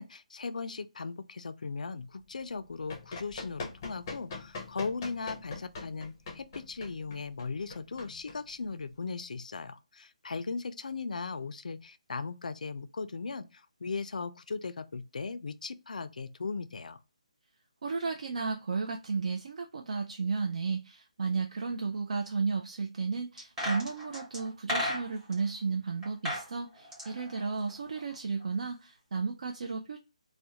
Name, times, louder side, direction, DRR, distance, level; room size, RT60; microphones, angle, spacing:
voice 1, 0.0-17.0, left 4 dB, 85° left, 0.3 m, -38 dB
Run, 2.7-9.0, left 3 dB, 25° left, 0.5 m, -43 dB
voice 2, 17.8-30.0, right 4 dB, 60° right, 0.3 m, -33 dB
sound 1, 23.4-25.4 26.0-26.5 26.8-28.1 28.4-28.5, left 1 dB, 10° right, 0.9 m, -35 dB
2.3 x 2.1 x 2.7 m
hypercardioid pair, 170°, 4 cm